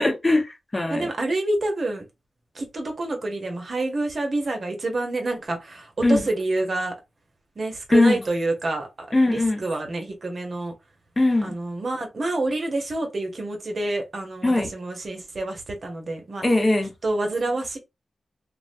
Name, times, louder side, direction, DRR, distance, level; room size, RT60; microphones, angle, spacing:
voice 1, 0.0-1.1 6.0-6.2 7.9-8.2 9.1-9.6 11.2-11.5 14.4-14.7 16.4-16.9, left 2 dB, 35° left, 0.8 m, -20 dB
voice 2, 0.9-2.0 2.5-6.9 7.6-10.7 11.4-16.4 17.0-17.8, right 2 dB, 60° right, 0.8 m, -28 dB
2.4 x 2.1 x 2.5 m
cardioid pair, 40°, 0 cm